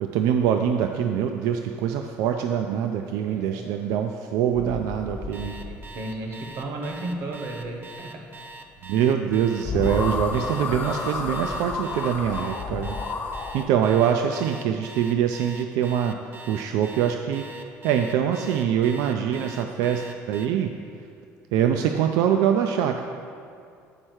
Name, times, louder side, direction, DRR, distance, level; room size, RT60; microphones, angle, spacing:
voice 1, 0.0-5.6 8.8-13.0 13.2-16.2 16.5-20.7 21.5-23.0, right 9 dB, 85° right, 5 dB, 0.4 m, -24 dB
voice 2, 3.2-3.8 5.5-8.3, right 2 dB, 65° right, 2 dB, 1.2 m, -34 dB
sound 1, 4.5-6.1 9.3-9.4 9.6-13.7, left 4 dB, 35° left, 0.6 m, -31 dB
Alarm, 5.3-20.5, right 3 dB, 35° right, 0.6 m, -43 dB
8.8 x 4.4 x 6.3 m, 2.4 s
cardioid pair, 140°, 6 cm